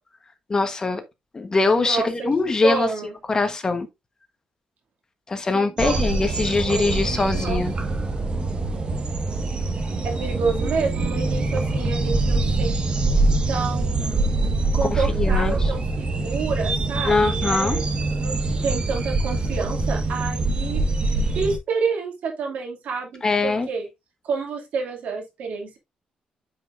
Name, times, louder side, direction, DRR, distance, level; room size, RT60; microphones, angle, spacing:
voice 1, 0.5-1.0 1.3-2.9 3.3-3.9 5.3-7.7 14.8-15.7 17.1-17.8 23.2-23.7, left 3 dB, 30° left, 1.2 m, -22 dB
voice 2, 1.8-2.1 2.6-3.1 5.5-6.0 6.7-6.9 7.3-7.6 10.0-12.9 13.5-14.2 14.7-17.8 18.2-20.8 21.1-23.9 24.2-25.8, right 5 dB, 75° right, 2.6 m, -29 dB
sound 1, 5.8-21.6, right 2 dB, 40° right, 1.5 m, -24 dB
9.4 x 5.4 x 2.6 m
cardioid pair, 125°, 2 cm